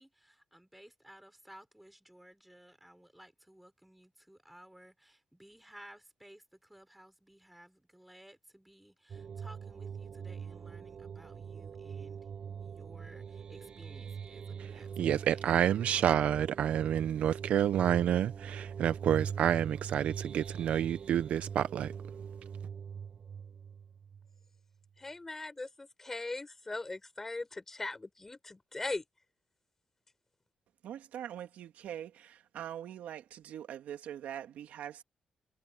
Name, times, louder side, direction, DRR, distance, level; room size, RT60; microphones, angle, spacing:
voice 1, 0.0-12.2 12.6-15.6, right 1 dB, 5° right, 5.6 m, -57 dB
sound 1, 9.1-24.6, right 7 dB, 40° right, 7.6 m, -43 dB
voice 2, 15.0-21.9, right 10 dB, 60° right, 0.5 m, -29 dB
voice 3, 25.0-29.0, left 2 dB, 15° left, 5.2 m, -39 dB
voice 4, 30.8-35.0, right 10 dB, 85° right, 2.5 m, -43 dB
wide cardioid pair, 180°, 3 cm